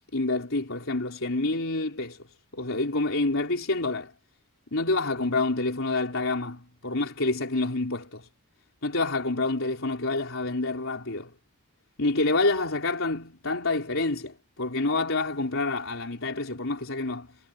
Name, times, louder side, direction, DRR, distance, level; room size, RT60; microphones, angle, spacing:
voice 1, 0.1-2.2 2.5-4.1 4.7-8.3 8.8-11.3 12.0-17.3, left 2 dB, 80° left, 3.9 m, -28 dB
head